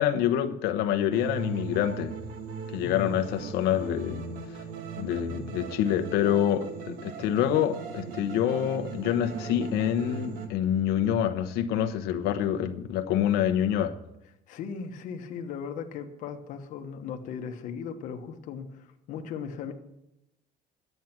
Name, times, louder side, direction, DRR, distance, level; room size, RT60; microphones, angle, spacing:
voice 1, 0.0-2.1 2.7-4.2 5.0-13.9, left 10 dB, 85° left, 7 dB, 1.0 m, -26 dB
sound 1, 1.1-10.5, right 5 dB, 65° right, 1.6 m, -38 dB
voice 2, 2.8-3.2 5.3-5.6 14.5-19.7, left 6 dB, 55° left, 5 dB, 1.3 m, -38 dB
10.5 x 9.3 x 5.9 m, 0.88 s
cardioid pair, 180°, 16 cm